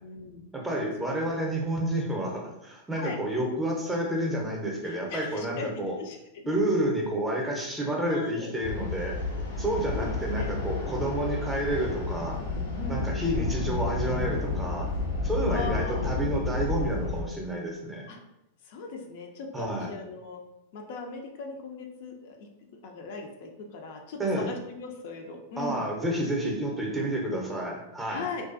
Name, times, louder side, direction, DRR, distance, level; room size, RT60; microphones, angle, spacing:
voice 1, 0.0-0.4 3.0-3.2 4.8-5.7 6.0-6.5 8.0-8.5 9.9-10.5 12.8-13.3 15.5-16.1 18.1-18.2 18.6-20.4 20.7-25.8 28.1-28.5, left 3 dB, 60° left, 2 dB, 0.4 m, -39 dB
voice 2, 0.5-5.9 6.5-9.2 9.6-12.4 12.9-14.9 15.2-18.1 19.5-19.9 24.2-24.5 25.6-28.3, right 1 dB, 10° right, -1 dB, 0.6 m, -30 dB
sound 1, 8.6-17.2, left 3 dB, 90° left, 0.8 m, -31 dB
2.4 x 2.2 x 2.5 m, 0.88 s
hypercardioid pair, 105°, 0 cm